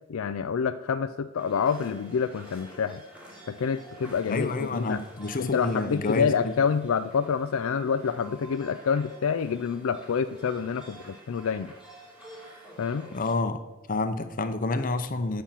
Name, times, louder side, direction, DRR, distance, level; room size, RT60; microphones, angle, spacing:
voice 1, 0.1-3.0 3.5-5.0 5.4-11.7 12.8-13.1, left 6 dB, 65° left, 9 dB, 0.4 m, -27 dB
sound 1, 1.4-13.3, right 1 dB, 5° right, 3.0 m, -49 dB
voice 2, 4.3-6.5 13.1-13.6 13.9-15.4, left 3 dB, 40° left, 9 dB, 0.8 m, -28 dB
10.0 x 5.7 x 7.3 m, 1.1 s
head